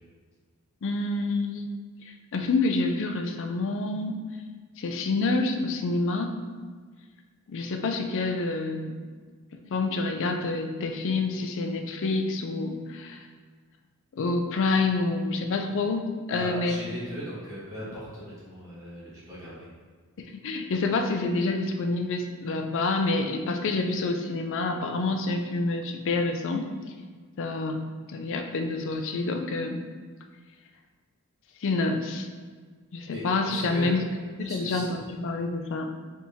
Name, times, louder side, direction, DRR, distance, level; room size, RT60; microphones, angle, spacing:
voice 1, 0.8-1.7 2.3-4.1 4.8-6.3 7.5-9.0 9.7-13.2 14.1-16.8 20.2-26.6 27.4-29.8 31.6-32.3 32.9-34.0 34.4-35.8, left 3 dB, 60° left, 5 dB, 0.4 m, -27 dB
voice 2, 16.3-19.7 33.1-33.9 34.5-34.9, equal, 15° right, -9 dB, 1.2 m, -38 dB
4.4 x 3.5 x 2.7 m, 1.5 s
head